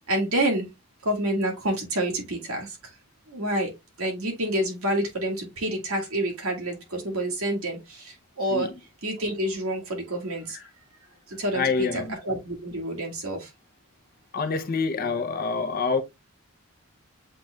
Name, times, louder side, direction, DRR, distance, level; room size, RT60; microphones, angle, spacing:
voice 1, 0.1-0.7 1.0-2.8 3.3-3.7 4.0-8.7 9.0-10.6 11.3-13.5, right 1 dB, 80° right, 1.9 m, -28 dB
voice 2, 11.5-12.2 14.3-16.0, left 4 dB, 40° left, 0.6 m, -26 dB
7.6 x 3.1 x 2.2 m
head